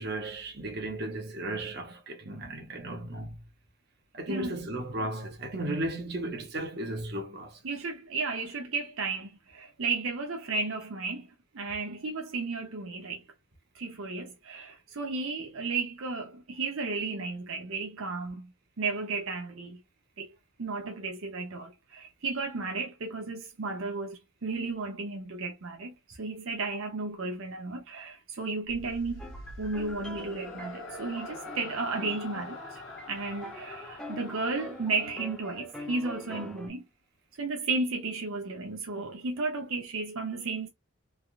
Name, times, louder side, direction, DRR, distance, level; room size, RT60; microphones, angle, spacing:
voice 1, 0.0-3.4 4.1-7.6, right 1 dB, 50° right, 1.0 m, -35 dB
voice 2, 4.3-4.6 7.6-11.3 11.5-13.2 13.7-19.8 20.2-20.3 20.6-29.3 29.6-32.8 33.1-36.9 37.3-40.7, right 3 dB, 80° right, 0.7 m, -34 dB
sound 1, 28.7-36.1, left 2 dB, 70° left, 1.1 m, -45 dB
sound 2, 29.2-36.7, equal, 5° left, 0.7 m, -45 dB
3.4 x 2.4 x 2.4 m
head